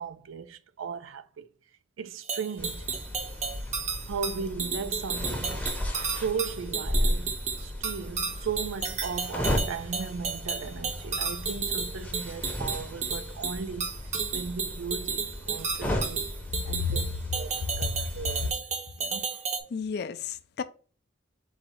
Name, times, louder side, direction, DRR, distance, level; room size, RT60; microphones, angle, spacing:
voice 1, 0.0-1.5 2.0-2.9 4.1-5.7 6.0-7.4 7.6-14.0 14.3-16.3 16.7-17.1 17.3-18.6 19.0-19.3, right 5 dB, 85° right, 0.4 m, -37 dB
sound 1, 2.2-19.6, right 5 dB, 35° right, 0.6 m, -33 dB
sound 2, 2.6-18.5, left 1 dB, 10° left, 0.6 m, -35 dB
voice 2, 19.7-20.6, left 5 dB, 55° left, 0.4 m, -31 dB
4.0 x 2.6 x 4.2 m
head